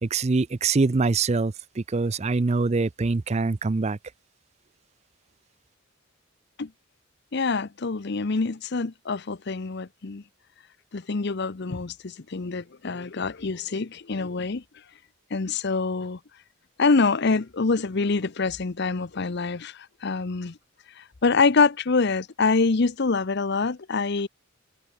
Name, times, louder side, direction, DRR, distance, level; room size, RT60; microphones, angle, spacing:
voice 1, 0.0-4.0, right 3 dB, 30° right, 0.5 m, -24 dB
voice 2, 7.3-10.2 10.9-14.6 15.3-16.2 16.8-20.6 21.2-24.3, left 4 dB, 55° left, 0.7 m, -25 dB
head